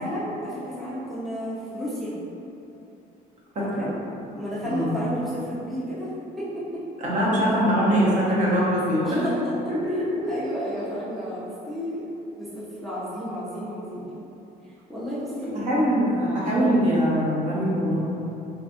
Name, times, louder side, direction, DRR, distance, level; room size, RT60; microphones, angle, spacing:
voice 1, 0.0-2.2 3.7-3.9 4.3-6.1 6.4-6.8 9.0-9.5 10.3-12.1 12.4-14.1 14.9-15.6, equal, ahead, -10 dB, 0.5 m, -32 dB
voice 2, 3.5-3.9 4.7-4.9 7.0-9.3 9.7-10.3 15.5-18.0, equal, 50° right, -7 dB, 0.9 m, -22 dB
4.0 x 2.3 x 2.5 m, 2.8 s
cardioid pair, 155°, 16 cm